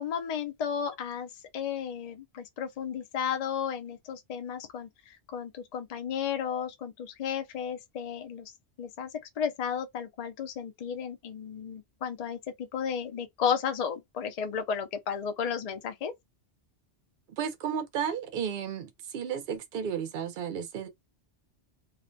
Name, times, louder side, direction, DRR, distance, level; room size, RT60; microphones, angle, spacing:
voice 1, 0.0-8.5 8.8-9.1 9.4-16.1, left 7 dB, 50° left, 0.5 m, -33 dB
voice 2, 17.4-20.9, right 8 dB, 55° right, 0.7 m, -33 dB
2.5 x 2.1 x 2.5 m
omnidirectional pair, 1.2 m